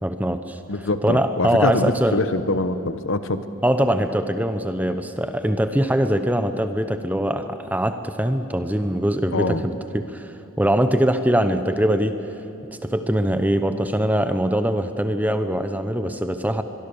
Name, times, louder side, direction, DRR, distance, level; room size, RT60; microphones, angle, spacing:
voice 1, 0.0-0.6 1.0-2.2 3.6-10.3 10.6-12.2 12.8-16.6, equal, 5° right, 9 dB, 0.8 m, -22 dB
voice 2, 0.7-3.4 9.3-9.6, left 2 dB, 60° left, 11 dB, 1.0 m, -24 dB
24.0 x 22.5 x 7.0 m, 2.8 s
head